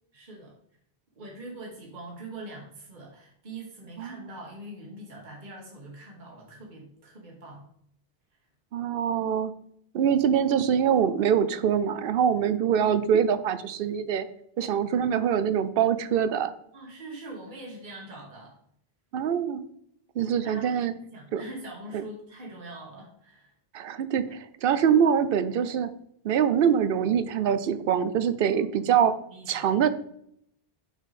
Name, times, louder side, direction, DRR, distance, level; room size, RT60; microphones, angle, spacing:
voice 1, 0.1-0.5 1.1-7.7 8.3-8.4 16.7-18.6 20.2-20.8 21.1-23.5 28.4-29.0 29.3-29.7, right 2 dB, 50° right, -2 dB, 1.5 m, -43 dB
voice 2, 8.7-9.5 9.9-14.3 14.6-16.5 19.1-19.6 20.2-20.9 21.3-21.4 23.7-25.9 26.2-29.2 29.5-29.9, right 8 dB, 65° right, 13 dB, 0.8 m, -24 dB
6.0 x 5.8 x 4.1 m, 0.70 s
omnidirectional pair, 1.0 m